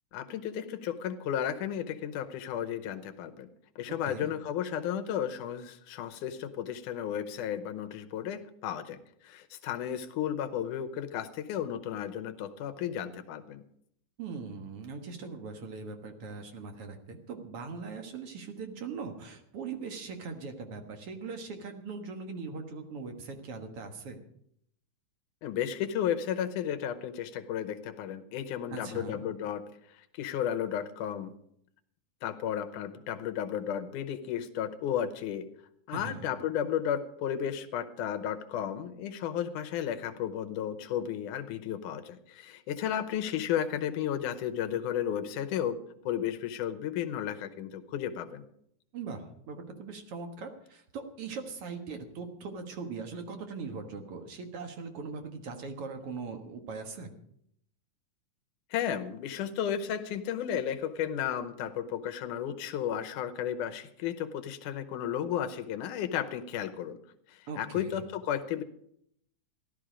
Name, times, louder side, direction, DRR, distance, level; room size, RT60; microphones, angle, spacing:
voice 1, 0.1-3.5 3.8-13.6 25.4-31.3 32.2-35.5 35.9-45.8 46.1-48.5 58.7-67.0 67.3-68.6, left 9 dB, 80° left, 9 dB, 2.3 m, -33 dB
voice 2, 14.2-24.2 28.7-29.2 35.9-36.3 48.9-57.1 67.5-68.0, right 4 dB, 55° right, 5 dB, 2.0 m, -40 dB
15.5 x 11.5 x 5.0 m, 0.71 s
omnidirectional pair, 3.6 m